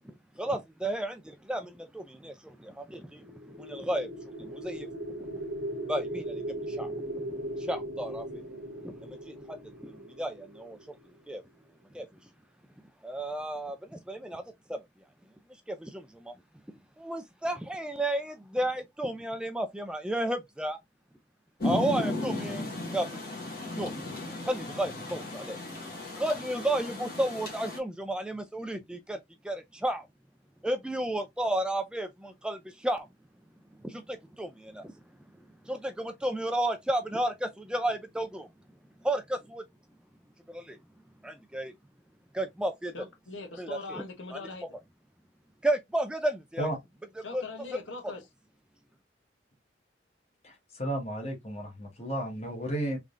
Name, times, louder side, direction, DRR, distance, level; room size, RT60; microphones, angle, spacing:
voice 1, 0.1-3.3 3.6-4.1 4.4-4.9 5.2-5.3 5.9-6.4 6.7-6.9 7.6-8.4 9.0-9.3 9.8-11.0 11.3-11.4 11.9-12.1 13.0-14.4 14.7-14.8 15.7-16.3 17.0-20.8 21.6-22.6 22.9-23.1 23.8-23.9 24.4-25.6 26.2-29.2 29.4-30.1 30.6-33.1 33.8-34.9 35.7-38.5 39.0-39.6 40.5-40.8 41.2-41.7 42.3-42.9 43.6-44.0 44.3-44.4 45.6-46.7 47.3-47.4, right 1 dB, 5° right, 0.3 m, -32 dB
sound 1, 3.2-11.3, right 1 dB, 70° right, 0.9 m, -38 dB
Rain, 21.6-27.8, left 2 dB, 55° left, 1.3 m, -35 dB
voice 2, 42.9-44.6 47.2-48.2, left 3 dB, 85° left, 1.1 m, -41 dB
voice 3, 50.4-53.0, right 1 dB, 35° left, 1.3 m, -33 dB
3.6 x 3.2 x 2.4 m
head